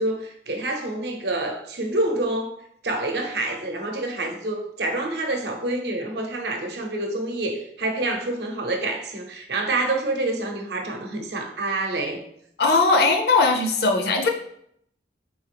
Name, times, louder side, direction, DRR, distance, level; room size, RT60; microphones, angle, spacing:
voice 1, 0.0-2.5 2.8-12.2 13.5-13.6, right 2 dB, 70° right, 3 dB, 0.7 m, -27 dB
voice 2, 12.6-14.3, left 3 dB, 65° left, 3 dB, 0.6 m, -19 dB
4.0 x 3.4 x 3.4 m, 0.70 s
head